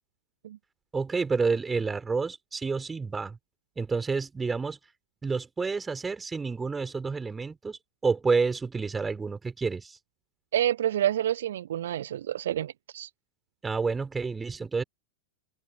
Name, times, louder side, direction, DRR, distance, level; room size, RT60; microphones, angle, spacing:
voice 1, 0.9-3.4 3.8-4.8 5.2-10.0 13.6-14.8, right 4 dB, 15° right, 4.4 m, -29 dB
voice 2, 10.5-13.1, right 11 dB, 60° right, 0.5 m, -28 dB
open air
figure-of-eight pair, 90°, 0 cm